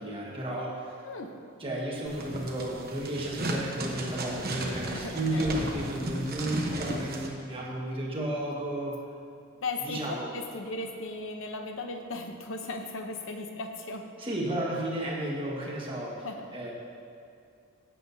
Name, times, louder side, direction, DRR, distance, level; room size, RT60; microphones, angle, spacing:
voice 1, 0.0-0.8 1.6-8.9 9.8-10.3 14.2-16.3 16.5-16.7, right 1 dB, 25° right, -4 dB, 1.6 m, -33 dB
voice 2, 1.0-1.4 4.9-5.5 9.6-14.1 16.2-16.5, left 3 dB, 70° left, 4 dB, 0.8 m, -37 dB
sound 1, 2.1-7.3, right 1 dB, 50° right, 1.0 m, -35 dB
15.5 x 7.7 x 2.8 m, 2.4 s
head